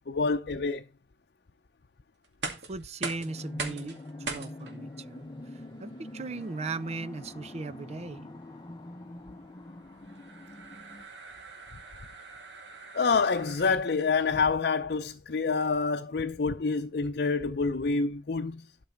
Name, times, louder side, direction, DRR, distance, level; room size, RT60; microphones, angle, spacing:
voice 1, 0.1-0.8 12.9-18.7, left 4 dB, 65° left, 0.6 m, -27 dB
sound 1, 2.2-14.1, right 4 dB, 85° right, 2.2 m, -43 dB
voice 2, 2.7-5.3 5.8-8.3, right 3 dB, 40° right, 0.5 m, -38 dB
sound 2, 3.2-11.0, left 1 dB, 25° left, 0.7 m, -44 dB
12.0 x 5.4 x 4.5 m
head